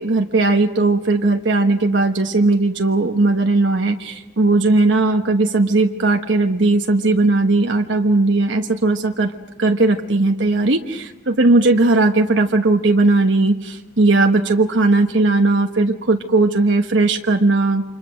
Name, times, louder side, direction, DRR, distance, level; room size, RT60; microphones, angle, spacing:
voice 1, 0.0-9.3 9.6-17.8, right 2 dB, 70° right, 4 dB, 1.2 m, -17 dB
29.5 x 26.5 x 6.4 m, 0.92 s
head